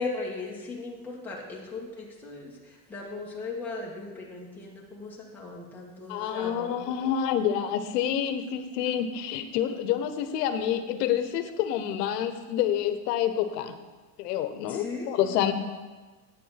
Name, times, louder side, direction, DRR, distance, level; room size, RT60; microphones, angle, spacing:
voice 1, 0.0-6.7 14.7-15.3, left 3 dB, 5° left, -5 dB, 1.5 m, -37 dB
voice 2, 6.1-13.7 14.2-15.5, left 10 dB, 85° left, 10 dB, 1.0 m, -28 dB
9.1 x 7.4 x 5.8 m, 1.3 s
supercardioid pair, 145°, 47 cm